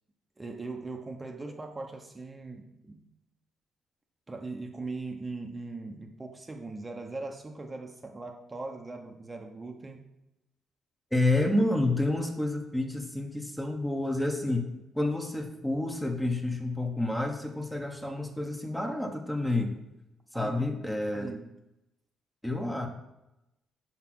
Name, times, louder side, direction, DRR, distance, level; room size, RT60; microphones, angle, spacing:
voice 1, 0.4-3.1 4.3-10.0 20.3-20.7 21.1-21.4, right 3 dB, 20° right, 3 dB, 0.9 m, -40 dB
voice 2, 11.1-14.7 14.9-19.8 20.3-21.3 22.4-22.9, left 2 dB, 5° left, 4 dB, 1.1 m, -29 dB
5.8 x 4.8 x 6.1 m, 0.93 s
cardioid pair, 90°, 0 cm